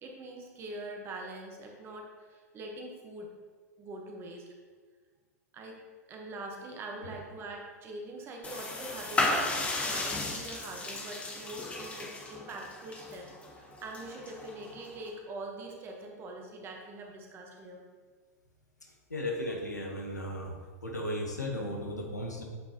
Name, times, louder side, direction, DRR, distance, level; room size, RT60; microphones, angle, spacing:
voice 1, 0.0-3.3 3.8-4.5 5.5-17.8, right 2 dB, 25° right, 1 dB, 1.0 m, -43 dB
sound 1, 8.4-15.1, left 2 dB, 15° left, 0.8 m, -35 dB
voice 2, 18.8-20.5 20.8-22.4, left 1 dB, 80° left, 1 dB, 1.2 m, -36 dB
8.3 x 4.3 x 2.9 m, 1.5 s
figure-of-eight pair, 95°, 9 cm